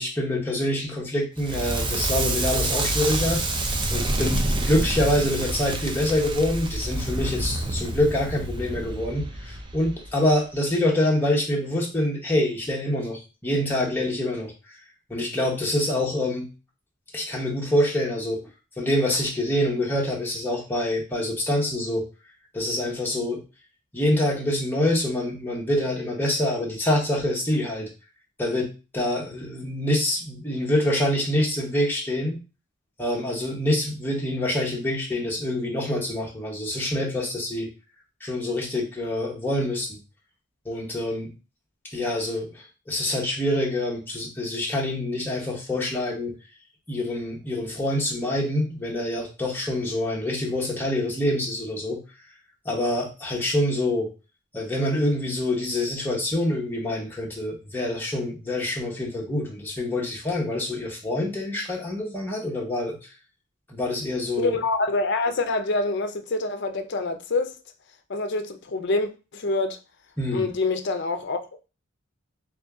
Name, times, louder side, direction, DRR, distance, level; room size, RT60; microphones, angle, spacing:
voice 1, 0.0-14.5 15.1-16.5 17.1-18.4 18.8-22.1 22.5-23.4 23.9-27.9 28.4-28.7 28.9-32.4 33.0-37.7 38.2-40.0 40.6-41.3 41.9-46.3 46.9-52.0 52.6-54.1 54.5-63.0 63.7-64.6 70.2-70.5, left 1 dB, 10° left, 1.0 m, -26 dB
Crackle, 1.4-10.3, right 2 dB, 25° right, 0.4 m, -28 dB
voice 2, 64.4-67.5 68.1-69.8 70.3-71.6, left 3 dB, 55° left, 0.5 m, -26 dB
3.7 x 2.7 x 3.4 m
head